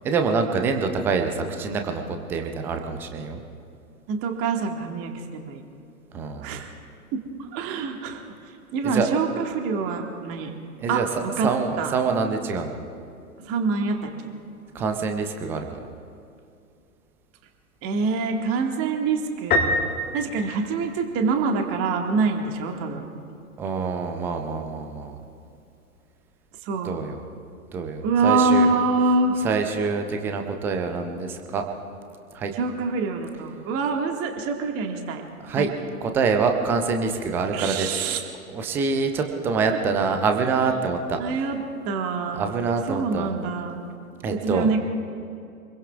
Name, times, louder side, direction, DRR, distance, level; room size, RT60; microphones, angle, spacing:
voice 1, 0.0-2.0 2.3-3.4 6.1-6.6 8.8-9.1 10.8-11.1 11.4-12.8 14.7-15.6 23.6-25.2 26.8-27.2 27.7-28.7 29.4-31.6 32.3-32.5 35.4-35.7 36.0-38.2 38.5-41.2 42.3-43.3 44.2-44.7, right 5 dB, 5° right, 5 dB, 0.4 m, -25 dB
voice 2, 4.1-5.6 6.4-6.7 7.1-7.2 7.5-8.2 8.7-10.5 10.9-11.0 11.4-11.5 11.8-11.9 13.4-14.0 14.2-14.3 17.8-19.7 20.1-23.1 26.6-27.0 28.0-29.4 32.5-35.2 35.5-35.7 37.5-38.2 41.2-41.6 41.8-42.5 42.9-43.8 44.3-44.8, right 4 dB, 30° right, 3 dB, 1.8 m, -25 dB
Piano, 19.5-21.3, left 1 dB, 20° left, 1.7 m, -25 dB
27.5 x 22.0 x 2.4 m, 2.5 s
figure-of-eight pair, 110°, 45 cm